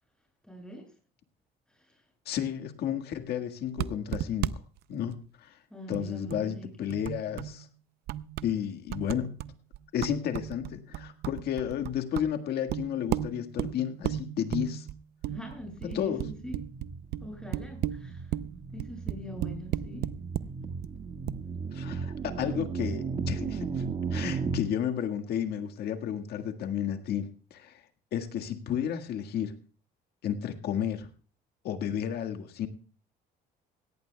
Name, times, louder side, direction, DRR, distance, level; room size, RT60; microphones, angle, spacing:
voice 1, 0.4-0.9 1.7-2.0 5.7-6.9 15.3-16.6 17.2-18.3 18.7-20.1 22.3-22.4, equal, 5° left, 2 dB, 7.7 m, -43 dB
voice 2, 2.3-4.6 4.9-5.6 5.9-7.7 8.4-9.4 9.9-14.9 15.9-16.2 21.7-23.8 24.1-27.8 28.1-29.5 30.2-31.1 31.6-32.7, left 9 dB, 70° left, 7 dB, 1.7 m, -32 dB
sound 1, 3.8-4.5 4.8-4.9 5.1-5.2 5.9-6.6 6.9-7.7 8.1-8.6 8.9-20.6 20.8-20.9 21.3-21.4, right 13 dB, 75° right, 0.6 m, -35 dB
sound 2, 15.6-24.6, right 5 dB, 45° right, 1.8 m, -36 dB
18.0 x 17.5 x 2.3 m, 0.37 s
cardioid pair, 110°, 17 cm